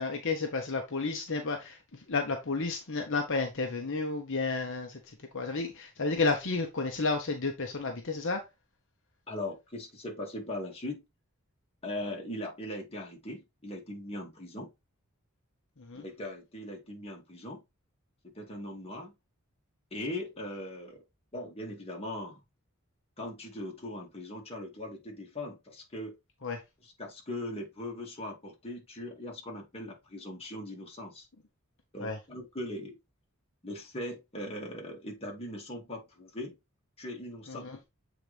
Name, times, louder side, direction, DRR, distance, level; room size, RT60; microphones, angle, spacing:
voice 1, 0.0-5.0 5.3-8.4 15.8-16.0 26.4-26.6 32.0-32.2 37.5-37.8, left 3 dB, 60° left, 1.0 m, -32 dB
voice 2, 9.3-11.0 11.8-14.7 15.9-17.6 18.2-19.1 19.9-21.0 21.3-22.4 23.2-26.1 26.8-31.3 31.9-33.0 33.6-36.6 37.0-37.7, left 1 dB, 30° left, 2.3 m, -40 dB
7.7 x 4.1 x 3.4 m
head